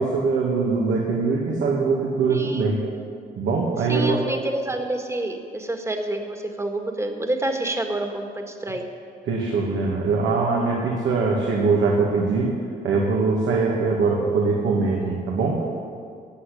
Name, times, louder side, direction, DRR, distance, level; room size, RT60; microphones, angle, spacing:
voice 1, 0.0-2.8 3.4-4.2 9.3-12.5 12.8-15.6, right 4 dB, 75° right, -3 dB, 2.2 m, -22 dB
voice 2, 2.3-2.7 3.9-8.9, right 1 dB, 15° right, 4 dB, 1.9 m, -28 dB
15.0 x 8.4 x 8.6 m, 2.3 s
supercardioid pair, 75°, 20 cm